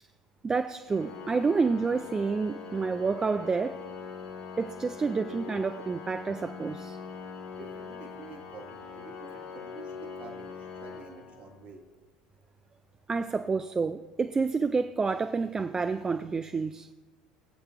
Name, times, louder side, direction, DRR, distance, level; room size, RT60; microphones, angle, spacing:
voice 1, 0.4-3.8 4.6-7.0 13.1-16.9, right 4 dB, 20° right, 0.3 m, -29 dB
Organ, 0.9-11.8, left 5 dB, 50° left, 1.7 m, -42 dB
voice 2, 7.5-11.9, right 4 dB, 40° right, 1.3 m, -49 dB
21.5 x 7.9 x 2.2 m
figure-of-eight pair, 70°, 3 cm